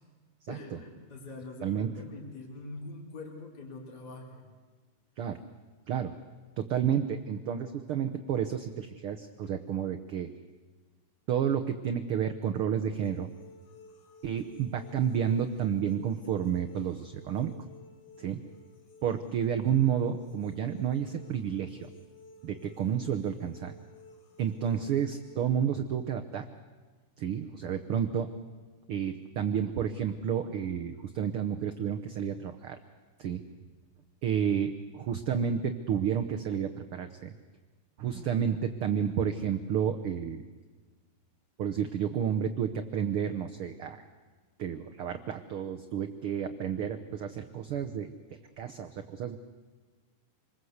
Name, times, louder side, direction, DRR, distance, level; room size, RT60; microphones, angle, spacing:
voice 1, 0.5-4.4, left 2 dB, 30° left, -1 dB, 4.0 m, -44 dB
voice 2, 6.6-10.3 11.3-13.3 14.2-17.5 18.2-18.4 19.0-21.9 22.4-23.7 24.4-26.5 27.2-28.3 28.9-32.8 33.2-33.4 34.2-37.3 38.0-40.4 41.6-44.0 44.6-48.1 48.6-49.4, right 8 dB, 85° right, 6 dB, 1.2 m, -30 dB
sound 1, 13.0-25.4, left 2 dB, 65° left, 3.2 m, -55 dB
27.0 x 21.0 x 8.0 m, 1.4 s
omnidirectional pair, 3.8 m